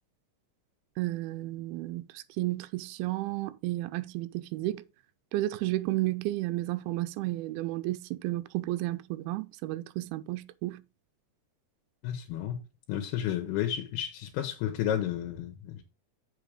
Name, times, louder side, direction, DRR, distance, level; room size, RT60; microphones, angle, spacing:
voice 1, 1.0-4.8 5.3-10.8, right 17 dB, 90° right, 2.5 m, -32 dB
voice 2, 12.0-12.6 12.9-15.8, left 10 dB, 90° left, 3.0 m, -32 dB
7.4 x 5.5 x 4.9 m
omnidirectional pair, 4.4 m